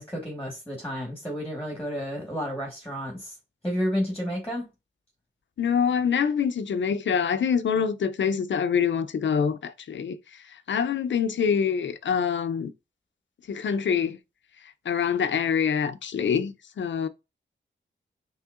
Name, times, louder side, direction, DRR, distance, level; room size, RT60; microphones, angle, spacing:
voice 1, 0.0-3.4 3.6-4.7, equal, 5° left, 1.4 m, -31 dB
voice 2, 5.6-10.2 10.7-12.7 13.5-14.2 14.9-17.1, left 7 dB, 70° left, 0.5 m, -25 dB
5.5 x 3.0 x 2.4 m
wide cardioid pair, 85°, 20 cm